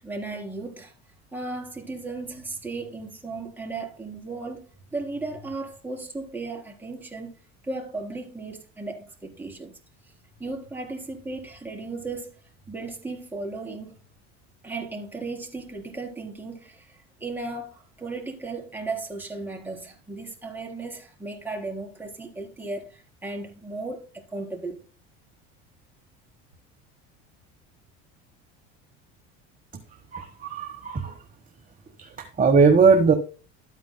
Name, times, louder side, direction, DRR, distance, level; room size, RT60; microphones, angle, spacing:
voice 1, 0.0-0.9 1.3-7.3 7.6-9.8 10.4-12.3 12.7-14.0 14.6-24.8, right 3 dB, 5° right, 4.2 m, -35 dB
voice 2, 30.1-31.1 32.0-33.1, right 5 dB, 25° right, 1.2 m, -19 dB
13.0 x 9.3 x 2.2 m
supercardioid pair, 95°, 33 cm